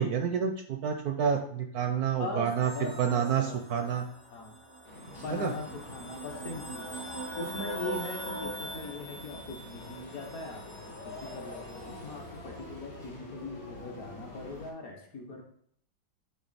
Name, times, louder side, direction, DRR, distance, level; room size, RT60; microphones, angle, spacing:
voice 1, 0.0-4.0 5.3-5.5, right 7 dB, 70° right, 5 dB, 0.9 m, -29 dB
voice 2, 2.2-3.9 4.3-4.5 5.2-6.9 7.4-10.8 11.0-15.4, left 3 dB, 55° left, 1 dB, 1.4 m, -40 dB
sound 1, 2.6-12.3, right 1 dB, 25° left, 0.7 m, -42 dB
sound 2, 4.8-14.7, left 2 dB, 70° left, 3.0 m, -47 dB
9.5 x 3.6 x 4.0 m, 0.65 s
omnidirectional pair, 2.0 m